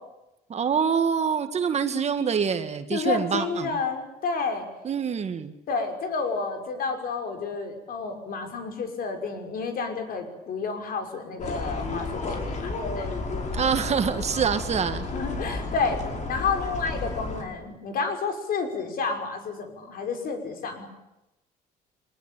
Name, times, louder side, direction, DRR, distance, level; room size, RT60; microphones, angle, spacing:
voice 1, 0.5-3.8 4.8-5.5 13.5-15.1, right 7 dB, 40° right, 9 dB, 1.9 m, -25 dB
voice 2, 2.9-4.7 5.7-13.1 15.1-16.0 16.3-20.9, left 4 dB, 60° left, 5 dB, 5.7 m, -30 dB
sound 1, 11.4-17.4, left 3 dB, 45° left, 5.3 m, -32 dB
24.0 x 20.0 x 9.2 m, 0.93 s
cardioid pair, 110°, 17 cm